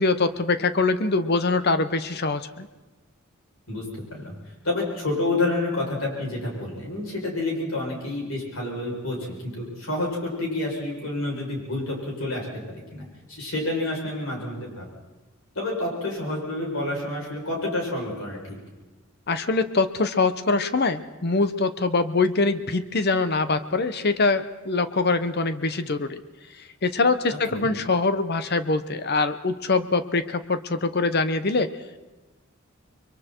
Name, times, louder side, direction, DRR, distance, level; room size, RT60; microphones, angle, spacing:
voice 1, 0.0-2.7 19.3-26.2 26.8-31.7, left 3 dB, 50° left, 11 dB, 0.9 m, -23 dB
voice 2, 3.7-4.3 4.6-14.9 15.5-18.6 27.3-27.8, left 2 dB, 70° left, -2 dB, 7.7 m, -29 dB
30.0 x 23.0 x 4.6 m, 1.2 s
head